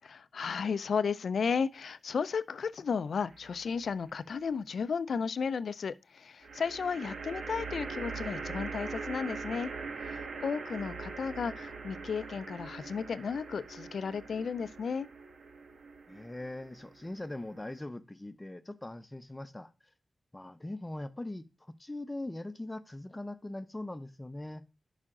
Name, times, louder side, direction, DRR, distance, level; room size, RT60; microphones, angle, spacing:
voice 1, 0.0-9.7 10.0-15.1, left 6 dB, 75° left, 0.4 m, -34 dB
sound 1, 3.3-4.0 6.4-17.8, right 4 dB, 75° right, 1.2 m, -42 dB
voice 2, 16.1-19.7 20.3-21.4 21.8-24.6, left 1 dB, 15° left, 0.6 m, -41 dB
11.0 x 5.0 x 3.7 m
wide cardioid pair, 140°, 0 cm